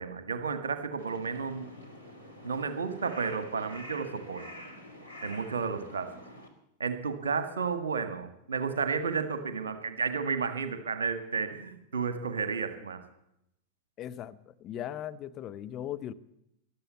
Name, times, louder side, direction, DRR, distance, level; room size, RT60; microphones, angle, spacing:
voice 1, 0.0-1.7 2.4-4.4 5.2-6.1 6.8-13.0, right 5 dB, 70° right, 10 dB, 1.7 m, -32 dB
Crow, 1.0-6.5, left 1 dB, 90° left, 2.6 m, -47 dB
voice 2, 14.0-16.1, left 11 dB, 35° left, 11 dB, 0.7 m, -38 dB
14.5 x 12.0 x 8.3 m, 0.80 s
figure-of-eight pair, 90°, 0 cm